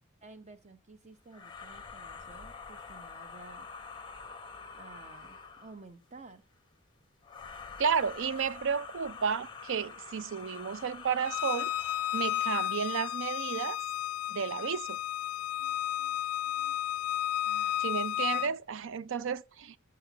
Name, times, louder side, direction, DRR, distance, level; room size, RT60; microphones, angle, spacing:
voice 1, 0.2-3.7 4.7-6.4 15.6-16.2 16.5-16.8 17.5-17.9 18.3-18.5, right 3 dB, 30° right, 1.0 m, -53 dB
sound 1, 1.3-5.9 7.2-12.7, left 5 dB, 20° left, 0.8 m, -46 dB
voice 2, 7.8-11.7 12.1-13.8 14.3-15.0 17.8-19.8, right 6 dB, 60° right, 0.5 m, -32 dB
Bowed string instrument, 11.2-18.5, left 12 dB, 85° left, 0.3 m, -33 dB
7.9 x 4.8 x 6.9 m
head